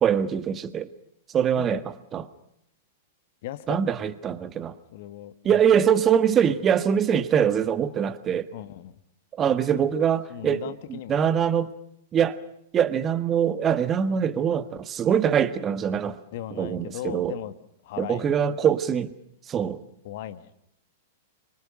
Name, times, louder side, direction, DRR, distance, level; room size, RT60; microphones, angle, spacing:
voice 1, 0.0-0.9 1.3-1.8 2.1-2.2 3.7-4.7 5.4-8.5 9.4-10.6 11.1-11.7 12.1-12.4 12.7-16.2 16.6-17.3 18.0-19.1 19.5-19.8, right 8 dB, 25° right, 13 dB, 1.6 m, -23 dB
voice 2, 3.4-4.1 4.9-5.9 8.5-9.0 10.3-11.2 16.3-17.5 17.8-18.5 20.0-20.5, left 12 dB, 50° left, 12 dB, 1.8 m, -37 dB
27.0 x 25.0 x 6.5 m, 0.77 s
figure-of-eight pair, 100°, 0 cm